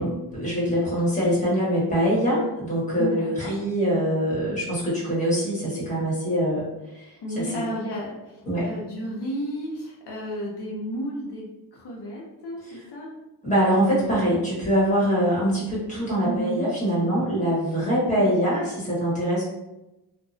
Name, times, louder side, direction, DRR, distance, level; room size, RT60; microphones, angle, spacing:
voice 1, 0.0-6.6 6.9-7.0 7.3-7.6 8.4-8.7 12.7-12.8 13.4-19.4, equal, 15° left, -7 dB, 1.4 m, -23 dB
voice 2, 3.0-3.5 7.2-11.4 11.7-13.1 16.2-16.7, equal, 75° left, -4 dB, 0.7 m, -32 dB
2.7 x 2.2 x 2.6 m, 0.97 s
wide cardioid pair, 95°, 41 cm